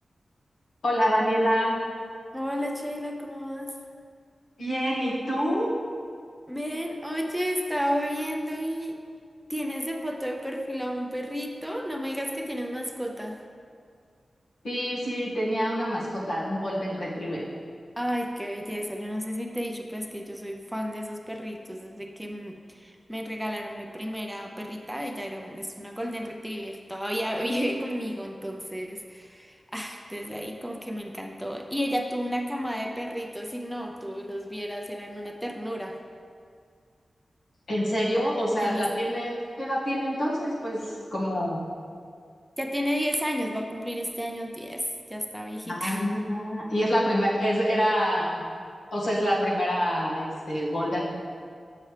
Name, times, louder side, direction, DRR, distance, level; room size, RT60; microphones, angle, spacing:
voice 1, 0.8-1.8 4.6-5.8 14.6-17.5 37.7-41.6 45.6-48.4 48.9-51.0, equal, 90° left, -6 dB, 1.7 m, -26 dB
voice 2, 2.3-3.7 6.5-9.0 9.5-13.4 18.0-36.0 38.6-38.9 42.6-46.1, equal, ahead, 2 dB, 0.5 m, -32 dB
8.6 x 6.7 x 3.3 m, 2.2 s
wide cardioid pair, 135°, 0 cm